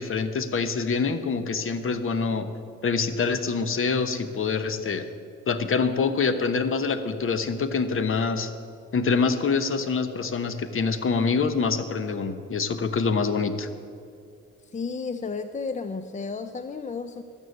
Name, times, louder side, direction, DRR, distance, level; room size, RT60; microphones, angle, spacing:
voice 1, 0.0-2.5 2.8-5.1 5.5-8.5 8.9-13.7, left 5 dB, 45° left, 10 dB, 1.1 m, -25 dB
voice 2, 14.7-17.2, left 4 dB, 25° left, 10 dB, 0.5 m, -32 dB
12.5 x 9.5 x 7.9 m, 2.3 s
cardioid pair, 90°, 30 cm